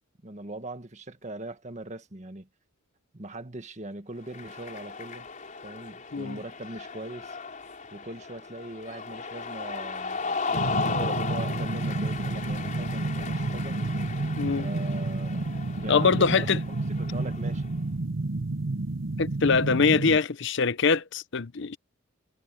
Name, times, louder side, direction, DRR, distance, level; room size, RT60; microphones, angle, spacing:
voice 1, 0.2-2.5 3.1-5.3 5.6-7.4 7.9-13.8 14.6-15.5 15.8-17.7, right 1 dB, 35° right, 1.7 m, -40 dB
Cheering, 4.2-17.7, left 4 dB, 40° left, 4.5 m, -36 dB
sound 1, 10.5-20.2, right 2 dB, 65° right, 0.9 m, -30 dB
voice 2, 14.4-14.7 15.9-16.6 19.2-21.8, left 5 dB, 60° left, 0.7 m, -23 dB
head